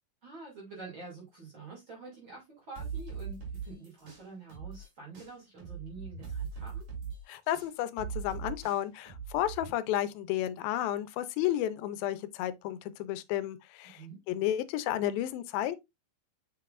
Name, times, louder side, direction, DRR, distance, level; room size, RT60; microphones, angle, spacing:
voice 1, 0.2-6.8 13.8-14.2, right 4 dB, 35° right, 3.1 m, -47 dB
sound 1, 2.8-4.9 5.1-9.7, right 6 dB, 55° right, 4.2 m, -40 dB
voice 2, 7.3-14.0 14.3-15.8, left 12 dB, 85° left, 2.4 m, -32 dB
6.6 x 5.9 x 2.5 m
omnidirectional pair, 4.1 m